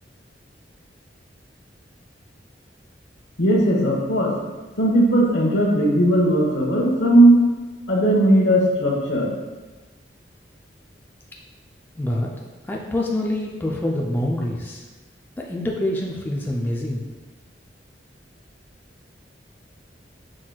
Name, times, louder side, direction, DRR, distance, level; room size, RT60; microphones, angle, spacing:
voice 1, 3.4-4.3 4.8-7.5 7.9-9.3, right 1 dB, 70° left, -3 dB, 1.1 m, -17 dB
voice 2, 12.0-14.8 15.4-17.1, left 1 dB, 10° left, -2 dB, 0.4 m, -26 dB
6.2 x 3.8 x 2.3 m, 1.2 s
head